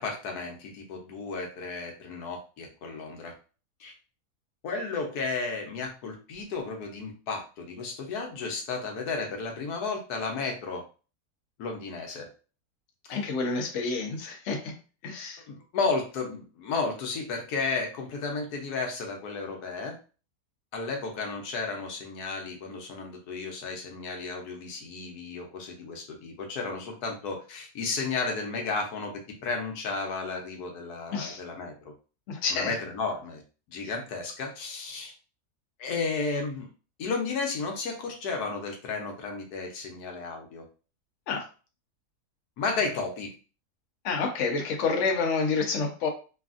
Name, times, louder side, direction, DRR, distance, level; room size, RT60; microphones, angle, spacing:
voice 1, 0.0-3.3 3.8-3.9 4.6-10.8 11.6-12.3 13.1-13.2 15.5-20.0 20.7-31.7 32.5-33.4 33.7-35.1 35.8-36.7 37.0-40.6 42.6-43.3, left 4 dB, 80° left, 2 dB, 1.2 m, -33 dB
voice 2, 13.1-14.7 15.0-15.4 31.1-31.4 32.3-32.7 41.3-41.5 44.0-46.1, left 4 dB, 60° left, 1 dB, 0.9 m, -28 dB
3.3 x 2.4 x 2.4 m, 0.35 s
omnidirectional pair, 1.7 m